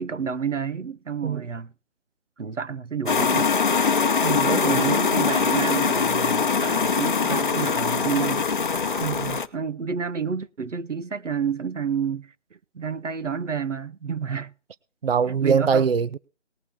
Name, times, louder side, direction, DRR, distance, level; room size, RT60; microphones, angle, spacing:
voice 1, 0.0-1.7 2.4-3.5 4.6-8.5 9.5-12.3 12.7-14.5 15.4-15.9, right 6 dB, 90° right, 0.9 m, -29 dB
sound 1, 3.1-9.5, left 5 dB, 45° left, 0.8 m, -22 dB
voice 2, 4.2-5.0 9.0-9.4 15.0-16.2, right 6 dB, 55° right, 0.5 m, -23 dB
19.5 x 6.7 x 3.7 m
figure-of-eight pair, 155°, 36 cm